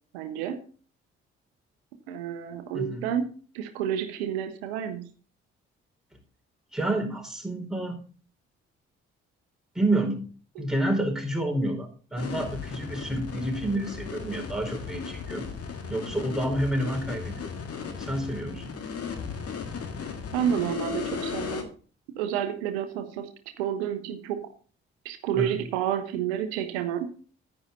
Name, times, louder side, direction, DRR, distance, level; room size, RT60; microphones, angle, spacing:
voice 1, 0.1-0.6 2.1-5.1 10.6-10.7 20.3-21.7 22.2-23.3 23.6-24.5 25.0-27.1, right 9 dB, 80° right, 9 dB, 0.8 m, -30 dB
voice 2, 6.7-8.0 9.7-10.2 10.6-15.4 15.9-17.5 18.0-18.7 25.3-25.5, right 1 dB, ahead, 0 dB, 4.6 m, -29 dB
sound 1, 12.2-21.6, left 6 dB, 50° left, 1.9 m, -36 dB
9.8 x 9.6 x 4.1 m, 0.41 s
hypercardioid pair, 40°, 31 cm